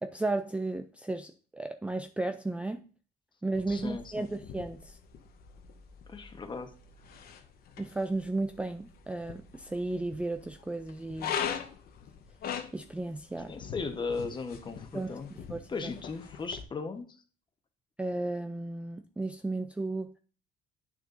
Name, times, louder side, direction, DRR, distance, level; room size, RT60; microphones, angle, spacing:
voice 1, 0.0-2.8 3.4-5.0 7.8-11.4 12.7-13.6 14.9-15.1 15.5-15.9 18.0-20.1, right 2 dB, 5° right, 0.3 m, -34 dB
sound 1, 3.5-16.6, left 8 dB, 65° left, 1.0 m, -42 dB
voice 2, 3.7-4.3 6.1-6.7 13.5-15.3 15.7-17.2, left 4 dB, 30° left, 1.1 m, -37 dB
8.7 x 6.4 x 2.6 m
cardioid pair, 110°, 17 cm